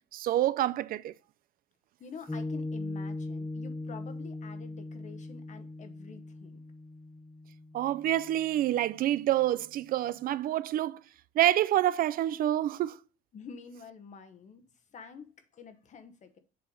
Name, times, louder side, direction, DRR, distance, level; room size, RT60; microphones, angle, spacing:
voice 1, 0.1-1.1 7.7-11.0 11.4-13.0, right 13 dB, 60° right, 0.4 m, -27 dB
voice 2, 2.0-6.6 13.3-14.7 14.9-16.4, left 5 dB, 45° left, 1.1 m, -48 dB
Piano, 2.3-9.0, left 2 dB, 10° left, 0.4 m, -40 dB
7.9 x 3.4 x 5.2 m
cardioid pair, 110°, 17 cm